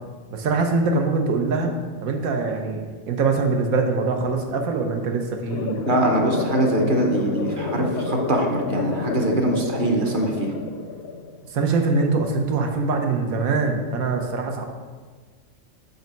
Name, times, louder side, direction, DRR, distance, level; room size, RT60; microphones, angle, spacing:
voice 1, 0.3-5.8 11.5-14.7, right 3 dB, 85° right, 3 dB, 1.2 m, -23 dB
sound 1, 5.5-11.5, left 5 dB, 65° left, 0.7 m, -29 dB
voice 2, 5.9-10.5, right 2 dB, 45° right, 2 dB, 0.8 m, -23 dB
5.3 x 4.5 x 5.2 m, 1.5 s
omnidirectional pair, 1.4 m